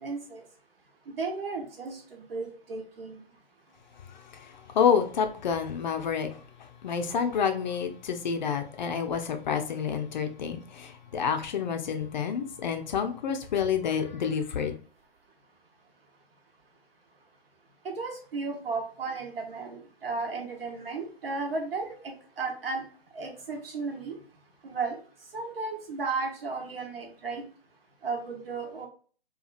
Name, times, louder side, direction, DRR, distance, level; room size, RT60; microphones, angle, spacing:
voice 1, 0.0-0.4 1.2-3.2 18.0-22.8 23.1-24.1 24.6-25.0 25.3-27.5 28.0-28.9, right 4 dB, 65° right, 1.0 m, -34 dB
voice 2, 4.3-6.3 6.8-14.7, left 7 dB, 45° left, 0.5 m, -28 dB
2.8 x 2.3 x 2.3 m
figure-of-eight pair, 130°, 31 cm